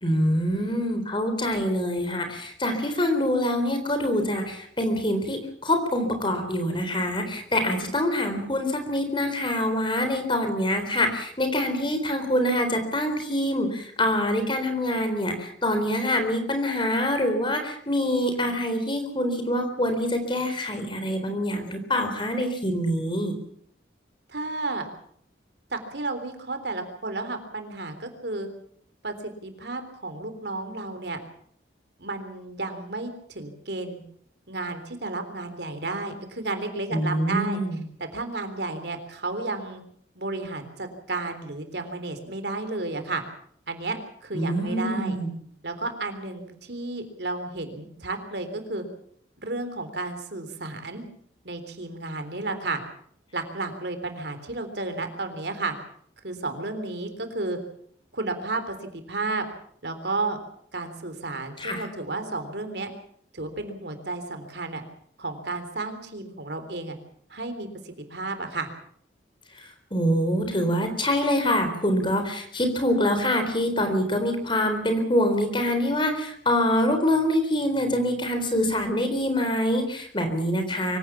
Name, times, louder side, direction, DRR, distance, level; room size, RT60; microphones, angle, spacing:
voice 1, 0.0-23.3 36.9-37.8 44.3-45.3 61.6-61.8 69.9-81.0, left 1 dB, 25° left, 7 dB, 4.0 m, -25 dB
voice 2, 24.3-24.9 25.7-28.5 29.0-31.2 32.0-34.0 34.5-37.6 38.0-39.8 40.2-43.2 43.7-45.2 45.6-48.8 49.4-51.0 51.4-52.8 53.3-55.7 56.2-57.6 58.1-59.5 59.8-60.4 60.7-62.9 63.3-64.8 65.2-67.0 67.3-68.7, right 3 dB, 65° right, 8 dB, 3.6 m, -32 dB
24.5 x 16.5 x 7.2 m, 0.64 s
head